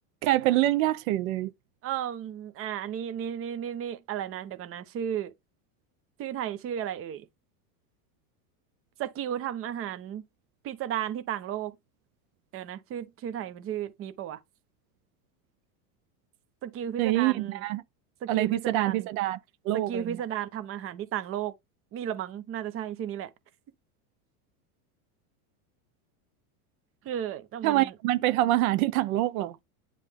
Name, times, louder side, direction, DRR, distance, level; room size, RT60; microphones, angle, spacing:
voice 1, 0.2-1.5 17.0-17.8 18.3-19.4 19.6-20.2 27.6-29.6, right 16 dB, 65° right, 0.7 m, -25 dB
voice 2, 1.8-5.3 6.2-7.3 9.0-10.2 10.6-11.7 12.5-14.4 16.6-17.6 18.2-19.1 19.7-21.5 21.9-23.3 27.0-27.9, right 10 dB, 30° right, 0.8 m, -34 dB
9.6 x 3.4 x 3.6 m
supercardioid pair, 145°, 45 cm